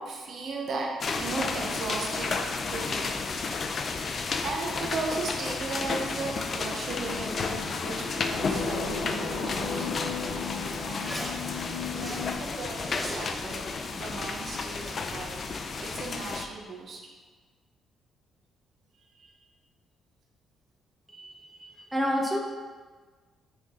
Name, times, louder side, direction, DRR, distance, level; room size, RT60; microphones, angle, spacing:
voice 1, 0.0-2.3 2.7-3.2 4.4-9.9 10.8-11.1 11.8-15.4 15.8-17.0 19.0-19.4, right 3 dB, 60° right, 0 dB, 1.2 m, -36 dB
sound 1, 1.0-16.5, left 4 dB, 45° left, 0.6 m, -32 dB
sound 2, 6.9-12.3, left 4 dB, 85° left, 1.2 m, -35 dB
Zipper (clothing), 8.7-15.4, equal, 10° left, 1.0 m, -44 dB
voice 2, 21.1-22.4, equal, 5° right, -1 dB, 1.2 m, -30 dB
9.8 x 3.8 x 3.9 m, 1.4 s
cardioid pair, 90°, 0 cm